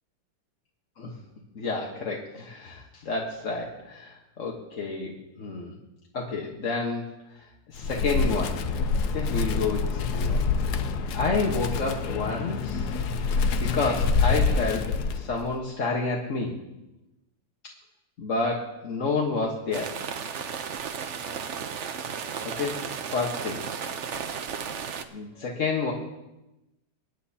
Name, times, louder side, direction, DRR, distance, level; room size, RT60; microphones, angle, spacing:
voice 1, 1.5-5.7 6.1-7.0 7.3-8.6 9.1-12.9 13.5-16.5 18.2-20.0 22.4-22.8 23.1-23.6 25.1-25.9, left 3 dB, 45° left, -1 dB, 1.6 m, -30 dB
Wind, 7.7-15.5, left 4 dB, 65° left, 1.2 m, -26 dB
sound 1, 19.7-25.0, right 7 dB, 55° right, 0.8 m, -34 dB
25.0 x 10.5 x 2.9 m, 0.98 s
omnidirectional pair, 2.0 m